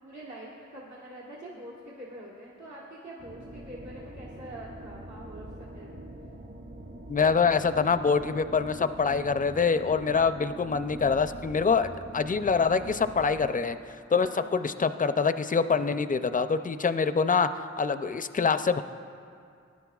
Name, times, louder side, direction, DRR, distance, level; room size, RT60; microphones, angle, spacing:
voice 1, 0.0-5.9 14.1-14.5, right 1 dB, 70° right, -6 dB, 1.5 m, -45 dB
sound 1, 3.2-13.5, right 1 dB, 50° right, 2.6 m, -44 dB
voice 2, 7.1-17.5 17.8-18.8, left 5 dB, 30° left, 11 dB, 0.4 m, -25 dB
19.5 x 10.5 x 2.4 m, 2.3 s
wide cardioid pair, 45°, 29 cm